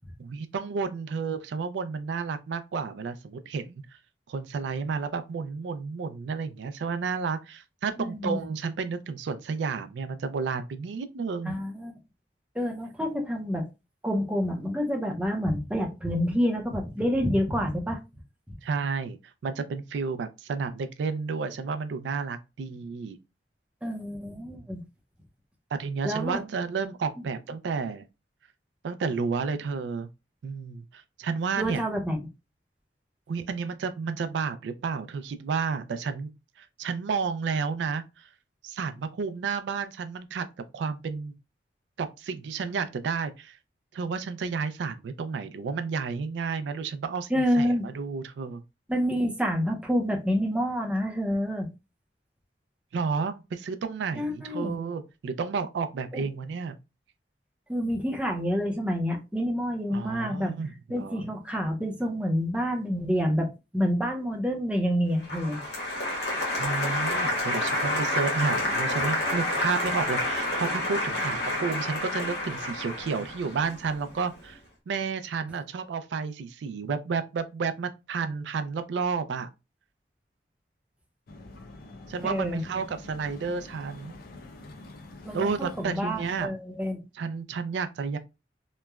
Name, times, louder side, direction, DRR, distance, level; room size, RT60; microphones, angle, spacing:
voice 1, 0.2-4.0 4.3-11.6 18.6-19.2 19.4-23.2 25.7-28.1 28.8-30.1 30.4-31.9 33.3-36.3 36.6-38.3 38.6-40.4 40.7-41.3 42.0-43.6 43.9-48.6 52.9-56.7 59.9-61.2 66.6-74.6 74.9-79.5 82.1-84.2 85.3-86.5 87.1-88.2, right 5 dB, 85° right, 0.3 m, -31 dB
voice 2, 8.0-8.4 11.4-11.9 12.5-13.6 14.0-18.0 23.8-24.8 26.0-26.4 31.6-32.3 47.3-47.9 48.9-51.7 54.2-54.8 56.1-56.2 57.7-60.5 60.9-65.6 82.2-82.6 85.2-87.0, equal, 5° right, 0.5 m, -28 dB
Applause, 65.2-74.3, left 1 dB, 75° left, 0.8 m, -29 dB
sound 1, 81.3-86.5, left 2 dB, 55° left, 0.5 m, -46 dB
3.0 x 2.1 x 2.3 m
head